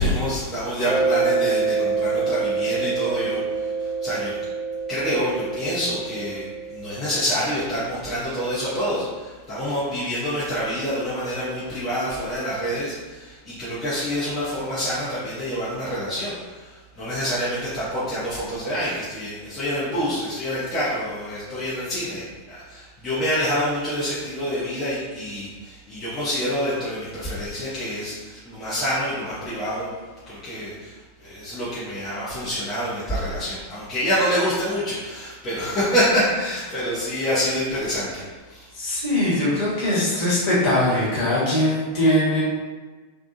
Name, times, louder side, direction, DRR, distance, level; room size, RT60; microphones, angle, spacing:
voice 1, 0.0-4.3 4.9-29.9 30.3-38.7, equal, 25° left, -11 dB, 0.8 m, -27 dB
Mallet percussion, 0.9-7.3, right 4 dB, 60° right, 0.5 m, -26 dB
voice 2, 38.7-42.4, left 1 dB, 45° left, -8 dB, 1.2 m, -21 dB
2.6 x 2.2 x 2.8 m, 1.4 s
figure-of-eight pair, 90°, 0 cm